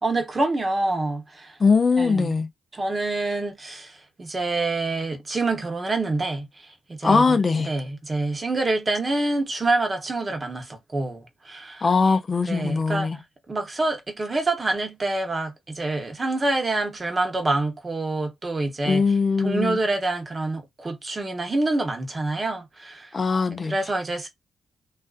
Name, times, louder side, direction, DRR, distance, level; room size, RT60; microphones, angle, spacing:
voice 1, 0.0-1.6 2.0-2.3 2.7-11.9 12.5-13.1 13.5-19.0 19.4-23.1 23.7-24.3, right 2 dB, 35° right, 0.9 m, -26 dB
voice 2, 1.6-2.5 7.0-7.7 11.8-13.2 18.9-19.8 23.1-23.7, left 4 dB, 40° left, 0.5 m, -21 dB
2.5 x 2.4 x 2.4 m
cardioid pair, 70°, 0 cm